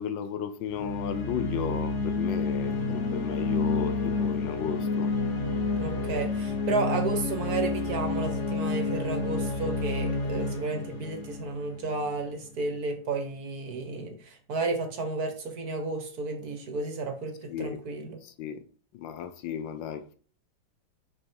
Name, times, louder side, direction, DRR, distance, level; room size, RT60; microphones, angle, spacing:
voice 1, 0.0-5.1 17.5-17.8 18.2-18.6 18.9-20.1, left 8 dB, 80° left, 1.4 m, -34 dB
sound 1, 0.7-12.2, left 3 dB, 45° left, 1.5 m, -30 dB
voice 2, 5.8-18.2, right 3 dB, 55° right, 1.9 m, -32 dB
6.4 x 6.3 x 4.6 m
omnidirectional pair, 2.0 m